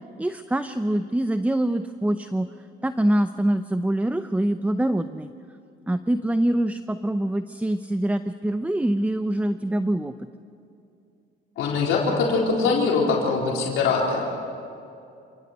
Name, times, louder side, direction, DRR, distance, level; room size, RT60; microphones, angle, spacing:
voice 1, 0.2-2.5 2.8-5.3 5.9-10.1, right 1 dB, 5° right, 10 dB, 0.7 m, -24 dB
voice 2, 11.6-14.2, left 4 dB, 85° left, -2 dB, 4.0 m, -22 dB
27.5 x 19.0 x 8.1 m, 2.6 s
cardioid pair, 90°, 20 cm